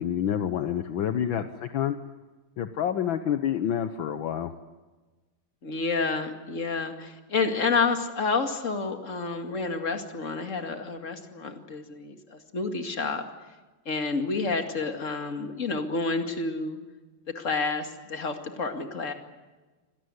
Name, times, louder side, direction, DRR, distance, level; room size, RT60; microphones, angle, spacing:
voice 1, 0.0-1.9 2.6-4.5, left 9 dB, 70° left, 9 dB, 1.7 m, -28 dB
voice 2, 5.6-13.2 13.9-16.8 17.3-19.1, left 4 dB, 35° left, 6 dB, 2.5 m, -29 dB
25.5 x 18.5 x 9.7 m, 1.2 s
omnidirectional pair, 2.4 m